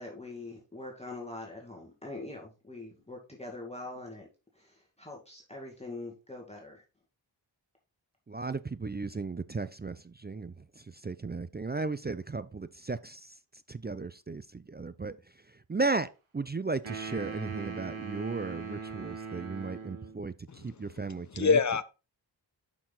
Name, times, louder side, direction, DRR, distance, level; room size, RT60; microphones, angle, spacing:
voice 1, 0.0-4.3 4.5-6.8, left 2 dB, 15° left, 2.2 m, -43 dB
voice 2, 8.3-10.5 11.0-13.2 13.7-15.2 15.7-16.1 16.3-21.6, right 3 dB, 20° right, 0.4 m, -35 dB
sound 1, 16.8-20.2, right 5 dB, 80° right, 1.7 m, -40 dB
voice 3, 20.5-21.8, left 5 dB, 35° left, 0.7 m, -28 dB
6.4 x 6.0 x 4.0 m
cardioid pair, 45°, 48 cm